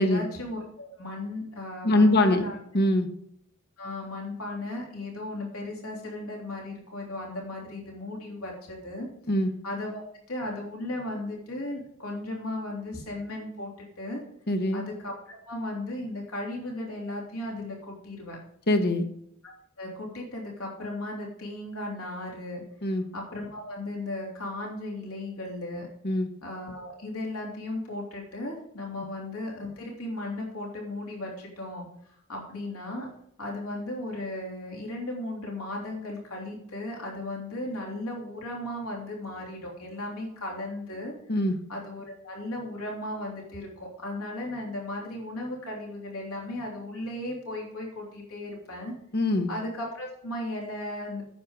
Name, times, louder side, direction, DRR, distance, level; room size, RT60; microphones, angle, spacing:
voice 1, 0.0-2.6 3.8-9.1 9.4-10.0 10.3-14.2 14.7-18.4 19.4-25.9 26.4-33.1 33.4-41.1 41.4-48.9 49.5-51.2, left 1 dB, 80° left, -2 dB, 3.3 m, -36 dB
voice 2, 1.8-2.4 2.7-3.1 9.3-9.5 14.5-14.8 18.7-19.1 22.8-23.0 26.0-26.3 41.3-41.6 49.1-49.5, left 1 dB, 50° left, 7 dB, 1.1 m, -22 dB
9.6 x 7.4 x 5.2 m, 0.70 s
head